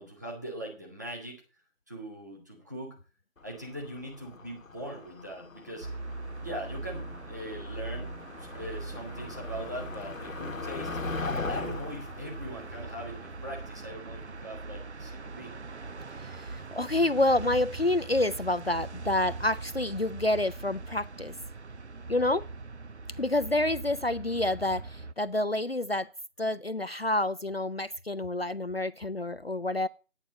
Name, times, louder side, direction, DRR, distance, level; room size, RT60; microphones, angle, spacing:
voice 1, 0.0-1.4 1.9-3.0 3.4-5.9 6.4-8.1 8.4-15.6, right 1 dB, 15° right, 1.4 m, -41 dB
Motor vehicle (road), 3.4-13.8, left 3 dB, 85° left, 1.2 m, -40 dB
sound 1, 5.8-25.1, right 3 dB, 60° right, 0.6 m, -41 dB
voice 2, 16.2-21.3 22.1-22.4 23.2-26.1 26.4-29.9, left 2 dB, 50° left, 0.5 m, -28 dB
9.9 x 8.9 x 5.1 m
figure-of-eight pair, 175°, 39 cm